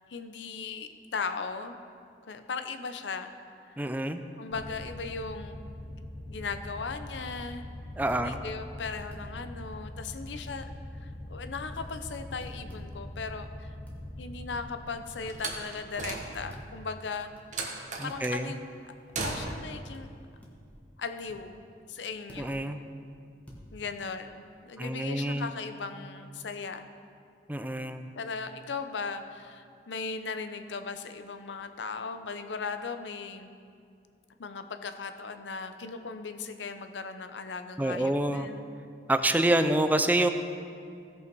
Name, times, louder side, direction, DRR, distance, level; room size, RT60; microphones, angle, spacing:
voice 1, 0.1-1.8 2.3-3.3 3.6-3.8 4.4-5.6 6.3-7.7 8.1-10.7 11.0-13.7 14.2-17.3 18.0-18.6 19.2-20.1 21.0-21.6 21.9-22.6 23.7-26.9 28.2-33.5 34.4-38.7, left 4 dB, 85° left, 8 dB, 0.6 m, -38 dB
voice 2, 3.8-4.2 8.0-8.4 18.0-18.5 22.4-22.8 24.8-25.5 27.5-28.0 37.8-38.5 39.1-40.3, right 1 dB, 10° right, 9 dB, 0.4 m, -27 dB
sound 1, 4.5-17.7, left 1 dB, 30° left, 0.7 m, -43 dB
sound 2, 8.1-8.3 9.1-9.3 10.5-10.6 11.8-11.9 12.1-12.9 13.9-14.0 15.3-15.4 16.5-16.7 17.4-17.5 18.1-18.2 19.5-19.6 19.9-20.1 20.4-20.7 21.3-21.4 22.3-22.5 23.5-23.6, equal, 10° left, 1.4 m, -50 dB
Slam, 15.3-16.7 17.5-18.4 19.1-19.8, right 3 dB, 45° right, 1.2 m, -36 dB
16.5 x 5.6 x 4.6 m, 2.4 s
head